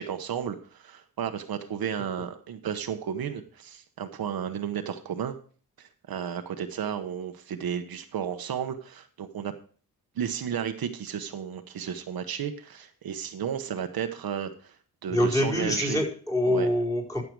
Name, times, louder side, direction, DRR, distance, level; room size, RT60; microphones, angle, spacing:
voice 1, 0.0-5.4 5.8-9.5 10.2-14.8 15.0-16.0 16.5-16.7, right 8 dB, 75° right, 7 dB, 1.1 m, -33 dB
voice 2, 15.1-17.2, left 1 dB, 10° left, 0 dB, 4.7 m, -25 dB
13.0 x 6.8 x 4.7 m, 0.42 s
cardioid pair, 105°, 37 cm